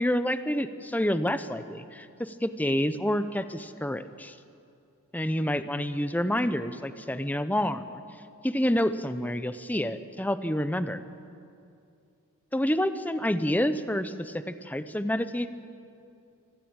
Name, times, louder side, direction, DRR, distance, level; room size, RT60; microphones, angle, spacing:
voice 1, 0.0-4.3 5.1-8.0 8.4-11.0 12.5-15.5, equal, 10° left, 11 dB, 0.8 m, -28 dB
24.5 x 14.0 x 8.9 m, 2.5 s
head